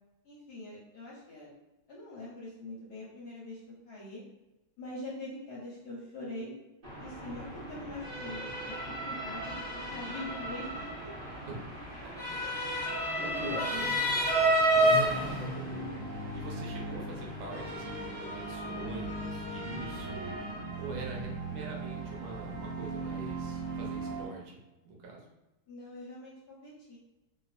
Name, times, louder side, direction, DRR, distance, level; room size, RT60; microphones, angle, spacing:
voice 1, 0.2-1.5 1.9-4.2 4.8-6.5 7.0-11.1 12.2-12.3 13.0-14.0 20.9-21.4 25.7-27.0, left 2 dB, 60° left, -6 dB, 1.1 m, -43 dB
Motor vehicle (road) / Siren, 6.8-24.2, right 1 dB, 50° right, 0.6 m, -33 dB
voice 2, 12.7-14.1 14.9-15.8 16.3-20.4 20.8-24.6 24.8-25.3, right 3 dB, 75° right, -1 dB, 1.4 m, -44 dB
sound 1, 15.1-24.2, right 2 dB, 30° right, 1.0 m, -39 dB
3.1 x 3.0 x 2.4 m, 1.0 s
omnidirectional pair, 2.3 m